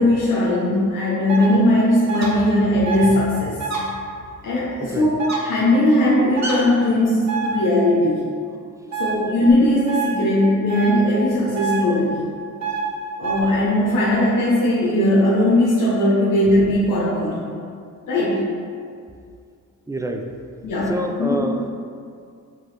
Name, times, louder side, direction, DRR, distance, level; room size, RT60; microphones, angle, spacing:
voice 1, 0.0-3.6 4.4-8.2 9.0-12.2 13.2-17.5 18.1-18.4 20.6-20.9 21.2-21.4, left 1 dB, 75° left, -7 dB, 0.8 m, -19 dB
sound 1, 1.3-1.5 2.1-2.3 2.8-3.1 3.6-3.8 5.2-5.4 6.4-6.6 7.3-7.5 8.9-9.1 9.9-10.1 10.7-10.9 11.6-11.8 12.6-12.8 13.2-13.4, right 6 dB, 55° right, 1.0 m, -25 dB
voice 2, 4.8-5.1 12.7-12.9 19.9-20.3 20.9-21.7, equal, 10° right, 3 dB, 0.3 m, -27 dB
4.5 x 3.5 x 3.2 m, 2.2 s
cardioid pair, 70°, 33 cm